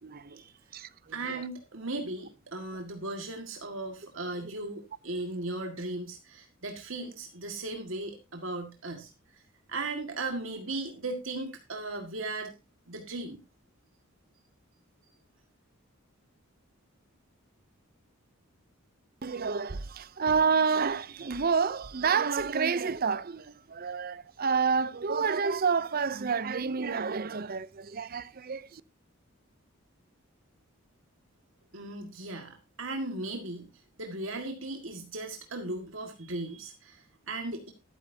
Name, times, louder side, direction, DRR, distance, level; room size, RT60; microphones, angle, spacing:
voice 1, 0.0-1.4 4.4-4.5 19.2-28.8, right 5 dB, 45° right, 0.6 m, -29 dB
voice 2, 1.1-9.1 9.7-12.5 12.9-13.4 31.7-33.7 34.0-37.7, right 2 dB, 65° right, 1.9 m, -37 dB
13.0 x 12.5 x 2.8 m
head